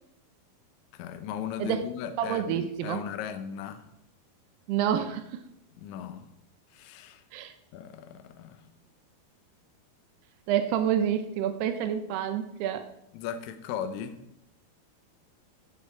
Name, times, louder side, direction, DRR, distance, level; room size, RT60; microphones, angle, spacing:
voice 1, 0.9-3.8 5.8-6.3 6.7-7.2 7.7-8.6 13.1-14.1, left 8 dB, 70° left, 9 dB, 1.8 m, -37 dB
voice 2, 2.2-3.0 4.7-5.4 7.3-7.5 10.5-12.9, right 9 dB, 90° right, 8 dB, 2.9 m, -28 dB
16.0 x 8.6 x 4.6 m, 0.82 s
omnidirectional pair, 4.5 m